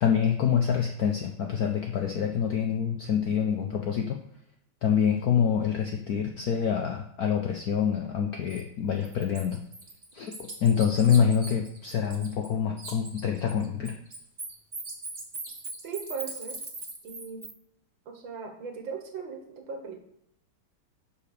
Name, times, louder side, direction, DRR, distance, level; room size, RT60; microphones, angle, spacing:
voice 1, 0.0-4.2 4.8-9.6 10.1-13.9, left 7 dB, 70° left, 2 dB, 0.8 m, -26 dB
Bird, 8.5-8.6 9.0-12.5 12.8-17.5, right 3 dB, 25° right, 1.1 m, -40 dB
voice 2, 15.8-16.6 17.0-17.4 18.1-20.0, right 6 dB, 65° right, 4 dB, 1.9 m, -38 dB
5.6 x 5.1 x 6.6 m, 0.75 s
omnidirectional pair, 2.3 m